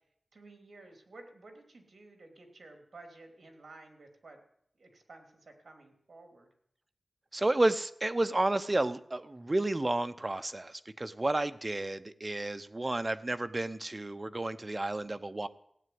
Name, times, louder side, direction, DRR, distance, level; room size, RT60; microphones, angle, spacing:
voice 1, 0.3-4.4 4.8-6.5, right 2 dB, 70° right, 5 dB, 3.1 m, -53 dB
voice 2, 7.3-15.5, right 2 dB, 30° right, 12 dB, 0.9 m, -31 dB
16.0 x 8.8 x 9.5 m, 0.71 s
wide cardioid pair, 75°, 0 cm